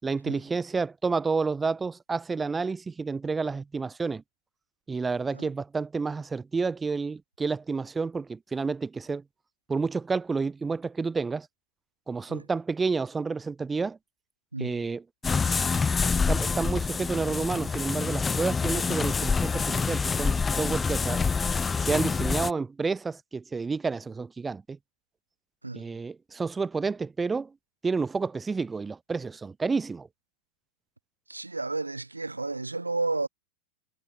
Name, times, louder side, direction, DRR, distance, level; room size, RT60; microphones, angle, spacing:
voice 1, 0.0-4.2 4.9-9.2 9.7-11.5 12.1-14.0 14.6-15.0 16.3-21.2 21.8-24.8 25.7-27.5 27.8-30.1, right 4 dB, 15° right, 4.8 m, -30 dB
voice 2, 14.5-14.9 25.6-25.8 31.3-33.3, right 3 dB, 80° right, 6.0 m, -32 dB
sound 1, 15.2-22.5, left 5 dB, 15° left, 0.9 m, -26 dB
figure-of-eight pair, 90°, 0 cm